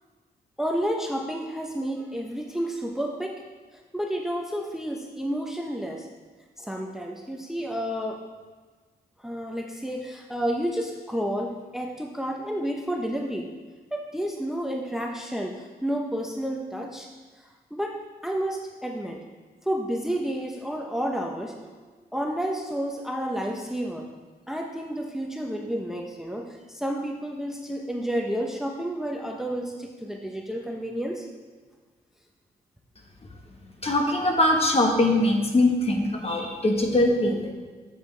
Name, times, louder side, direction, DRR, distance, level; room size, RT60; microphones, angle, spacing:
voice 1, 0.6-3.4 3.7-6.1 6.6-8.2 9.2-13.5 13.9-17.1 17.7-18.0 18.2-19.2 19.6-21.7 22.1-24.1 24.5-31.3, equal, ahead, 1 dB, 0.8 m, -30 dB
voice 2, 33.8-37.5, left 1 dB, 35° left, 2 dB, 1.3 m, -22 dB
7.8 x 7.2 x 3.3 m, 1.4 s
cardioid pair, 70°, 17 cm